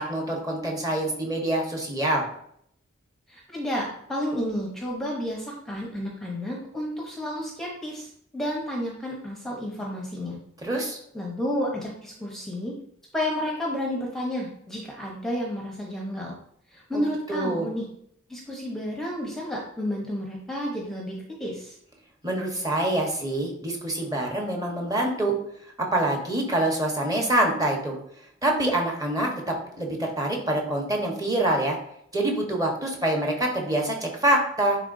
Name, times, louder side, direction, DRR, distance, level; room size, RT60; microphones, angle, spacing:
voice 1, 0.0-2.3 10.6-11.0 16.9-17.0 17.3-17.7 22.2-25.3 25.9-28.0 28.4-31.8 32.1-34.8, right 1 dB, 20° right, 0 dB, 1.2 m, -25 dB
voice 2, 3.3-8.1 8.3-10.4 11.1-12.7 13.1-16.4 16.7-17.8 18.3-21.8, equal, ahead, -2 dB, 0.9 m, -31 dB
10.0 x 3.6 x 2.7 m, 0.69 s
head